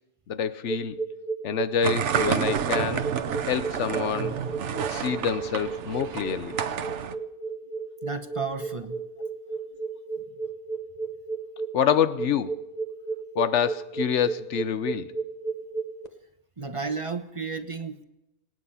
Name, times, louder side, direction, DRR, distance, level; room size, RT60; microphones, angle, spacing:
voice 1, 0.3-1.0 1.4-3.0 3.5-4.4 4.9-6.6 11.7-12.5 13.4-15.1, left 8 dB, 85° left, 1.1 m, -26 dB
sound 1, 0.6-16.1, right 4 dB, 35° left, 1.3 m, -33 dB
sound 2, 1.8-7.2, right 8 dB, 85° right, 1.1 m, -29 dB
voice 2, 8.0-9.0 16.6-18.0, right 4 dB, 30° right, 1.0 m, -33 dB
26.5 x 9.4 x 5.6 m
omnidirectional pair, 1.2 m